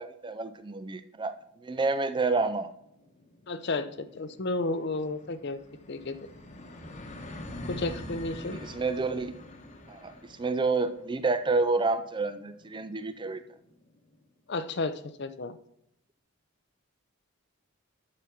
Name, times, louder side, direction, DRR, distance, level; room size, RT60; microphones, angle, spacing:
voice 1, 0.0-1.4 1.6-2.7 8.5-9.3 9.9-13.4, right 3 dB, 20° right, 12 dB, 0.4 m, -29 dB
sound 1, 2.8-14.1, left 1 dB, 30° left, 1.0 m, -45 dB
voice 2, 3.5-5.6 5.9-6.2 7.7-8.6 14.5-15.6, left 2 dB, 50° left, 12 dB, 0.6 m, -32 dB
11.5 x 4.2 x 6.0 m, 0.78 s
head